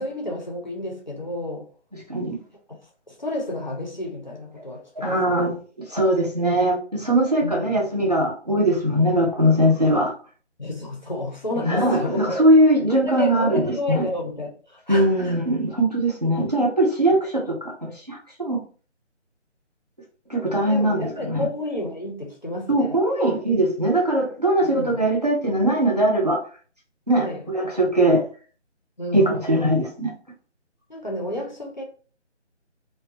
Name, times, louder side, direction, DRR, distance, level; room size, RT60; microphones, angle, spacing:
voice 1, 0.0-1.7 3.1-5.5 7.4-7.7 10.6-12.2 12.9-15.1 20.7-22.9 24.6-25.0 27.1-27.4 29.0-29.4 30.9-31.8, left 1 dB, 40° left, 0.5 m, -31 dB
voice 2, 5.0-5.6 5.9-10.1 11.7-14.0 14.9-18.6 20.3-21.4 22.7-26.4 27.1-28.2 29.1-30.1, right 1 dB, 35° right, 0.5 m, -21 dB
2.4 x 2.2 x 2.5 m
figure-of-eight pair, 175°, 36 cm